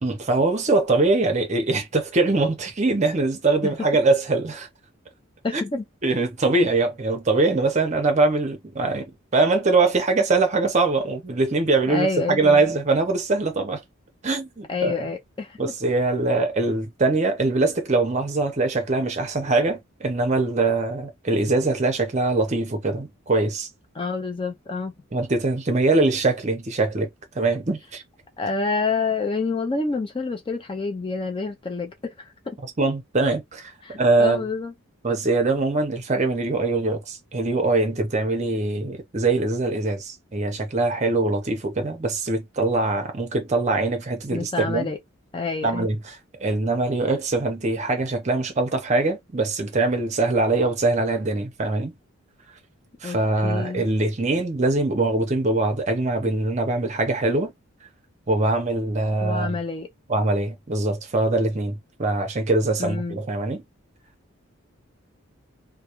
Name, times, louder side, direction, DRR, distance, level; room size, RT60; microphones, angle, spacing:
voice 1, 0.0-4.7 5.5-5.6 6.0-13.8 14.2-14.9 15.6-23.7 25.1-27.1 27.3-28.0 32.6-34.4 35.0-44.9 45.6-46.2 46.4-52.0 53.0-57.5 58.3-59.6 60.1-63.6, right 3 dB, 35° right, 0.6 m, -22 dB
voice 2, 5.4-5.8 11.9-12.7 14.7-15.6 24.0-24.9 28.4-32.6 33.8-34.7 44.3-45.0 45.3-45.9 53.0-53.8 59.2-59.9 62.8-63.2, left 4 dB, 25° left, 0.3 m, -28 dB
2.2 x 2.1 x 2.9 m
head